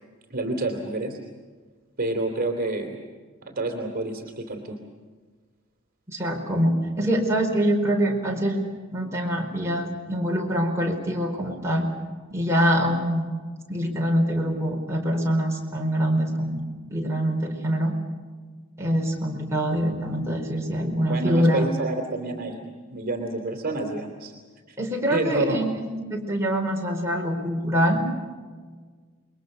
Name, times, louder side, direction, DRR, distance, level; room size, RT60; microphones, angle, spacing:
voice 1, 0.3-1.2 2.0-3.0 3.4-4.8 21.1-22.6 22.9-24.3 24.7-24.8 25.1-25.6, right 2 dB, 45° right, 3 dB, 3.1 m, -28 dB
voice 2, 6.1-8.6 8.9-11.9 12.3-13.3 13.7-16.6 16.9-18.0 18.8-21.7 24.8-28.1, equal, 15° right, -1 dB, 4.7 m, -24 dB
28.5 x 22.5 x 6.7 m, 1.5 s
head